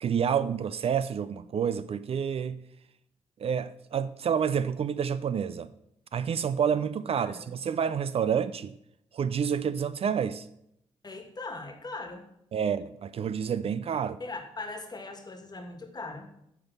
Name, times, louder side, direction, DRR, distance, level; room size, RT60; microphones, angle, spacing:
voice 1, 0.0-2.6 3.4-5.7 6.1-8.7 9.1-10.5 12.5-14.2, right 7 dB, 55° right, 0.4 m, -29 dB
voice 2, 7.2-7.5 11.0-12.3 14.2-16.3, left 3 dB, 35° left, 1.5 m, -40 dB
9.3 x 3.6 x 7.1 m
cardioid pair, 75°, 12 cm